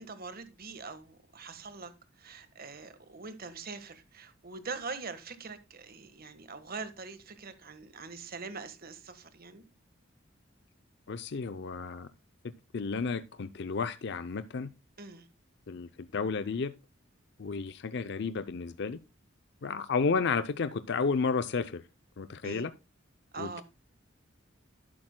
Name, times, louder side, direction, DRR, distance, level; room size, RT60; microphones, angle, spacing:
voice 1, 0.0-1.9 2.2-9.6 15.0-15.2 22.4-22.7 23.3-23.6, right 4 dB, 50° right, 1.4 m, -43 dB
voice 2, 11.1-12.1 12.7-14.7 15.7-16.7 17.4-19.0 19.6-21.8 22.2-22.7 23.4-23.6, left 5 dB, 60° left, 0.5 m, -32 dB
12.0 x 11.5 x 2.2 m
head